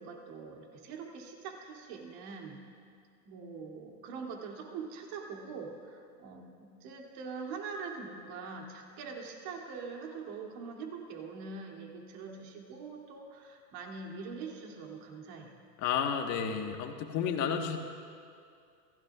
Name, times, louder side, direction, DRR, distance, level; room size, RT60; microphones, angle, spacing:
voice 1, 0.0-2.6 3.2-15.6, right 5 dB, 45° right, 0 dB, 2.9 m, -43 dB
voice 2, 15.8-17.8, left 7 dB, 35° left, 4 dB, 1.5 m, -31 dB
27.5 x 16.0 x 2.4 m, 2.3 s
hypercardioid pair, 120°, 49 cm